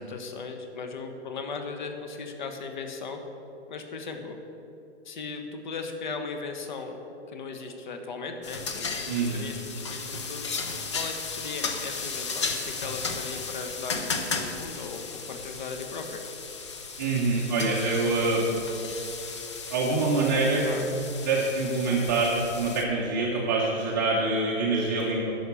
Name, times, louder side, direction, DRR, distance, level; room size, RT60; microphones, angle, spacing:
voice 1, 0.0-3.2 3.7-4.4 5.0-7.0 7.3-10.5 10.9-16.2 20.6-20.9, left 4 dB, 45° left, 5 dB, 1.2 m, -37 dB
sound 1, 8.4-22.8, left 4 dB, 25° left, 0.6 m, -35 dB
voice 2, 9.1-9.4 17.0-18.5 19.7-20.6 21.3-25.3, right 3 dB, 15° right, -5 dB, 0.8 m, -25 dB
10.5 x 6.4 x 8.3 m, 3.0 s
hypercardioid pair, 170°, 34 cm